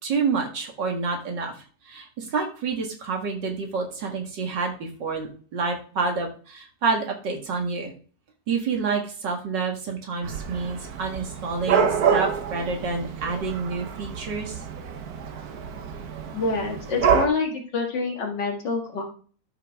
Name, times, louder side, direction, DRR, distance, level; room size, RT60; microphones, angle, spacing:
voice 1, 0.0-1.5 1.9-7.9 8.5-14.6, right 4 dB, 90° right, 1 dB, 2.5 m, -28 dB
Dog / Cat, 10.2-17.3, right 6 dB, 65° right, 1.4 m, -27 dB
voice 2, 16.3-19.0, left 4 dB, 85° left, 1 dB, 2.6 m, -27 dB
13.0 x 5.8 x 3.6 m, 0.42 s
omnidirectional pair, 1.8 m